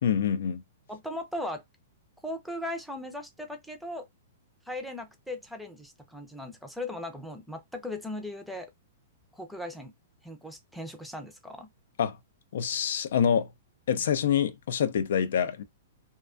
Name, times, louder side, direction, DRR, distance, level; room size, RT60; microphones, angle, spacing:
voice 1, 0.0-0.6 12.0-12.2 12.5-13.5 13.9-15.6, left 8 dB, 70° left, 0.3 m, -26 dB
voice 2, 0.9-1.6 2.2-4.1 4.7-8.7 9.3-9.9 10.2-11.7, left 1 dB, ahead, 0.5 m, -38 dB
2.3 x 2.2 x 2.4 m
hypercardioid pair, 140°, 0 cm